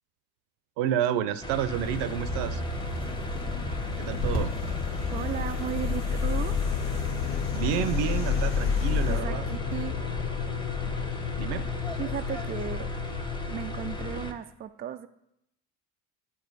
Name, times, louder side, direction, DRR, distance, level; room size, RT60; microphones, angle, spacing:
voice 1, 0.8-2.6 4.0-4.6 7.5-9.4 11.4-11.7, right 10 dB, 65° right, 13 dB, 0.7 m, -29 dB
sound 1, 1.4-14.3, right 2 dB, 10° left, 1.0 m, -38 dB
sound 2, 1.7-9.2, left 4 dB, 85° left, 1.5 m, -31 dB
sound 3, 1.7-14.3, left 9 dB, 55° left, 0.6 m, -34 dB
voice 2, 5.1-6.6 9.1-10.0 12.0-12.9 13.5-15.1, right 9 dB, 25° right, 9 dB, 0.3 m, -35 dB
9.8 x 4.3 x 4.0 m, 0.79 s
hypercardioid pair, 60°, 46 cm